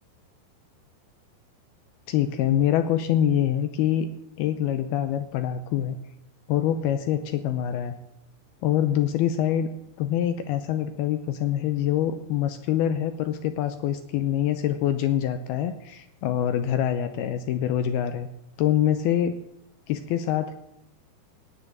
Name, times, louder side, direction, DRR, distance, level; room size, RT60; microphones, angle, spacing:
voice 1, 2.1-4.1 4.4-6.0 6.5-7.9 8.6-9.7 10.0-18.3 18.6-19.4 19.9-20.5, left 10 dB, 75° left, 10 dB, 2.4 m, -25 dB
18.0 x 9.4 x 7.3 m, 0.82 s
omnidirectional pair, 5.1 m